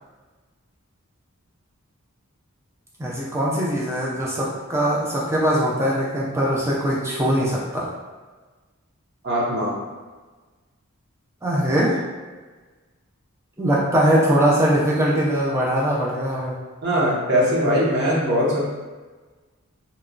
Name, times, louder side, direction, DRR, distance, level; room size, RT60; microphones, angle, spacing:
voice 1, 3.0-7.9 11.4-12.0 13.6-16.6, equal, 10° right, -5 dB, 0.4 m, -21 dB
voice 2, 9.2-9.7 16.8-18.7, equal, 55° right, -7 dB, 0.8 m, -21 dB
2.9 x 2.3 x 2.4 m, 1.3 s
head